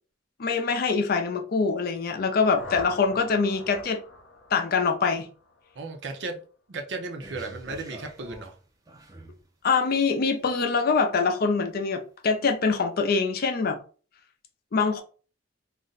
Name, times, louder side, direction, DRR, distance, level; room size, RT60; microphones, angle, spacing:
voice 1, 0.4-4.0 4.5-5.3 9.6-13.8 14.7-15.0, left 4 dB, 50° left, 0.5 m, -24 dB
sound 1, 2.0-5.9, left 3 dB, 85° left, 0.8 m, -44 dB
voice 2, 2.7-3.2 5.8-6.4 6.7-8.6, right 3 dB, 65° right, 0.6 m, -36 dB
sound 2, 7.2-9.5 10.2-10.3, equal, 20° right, 0.5 m, -45 dB
2.5 x 2.1 x 3.8 m
head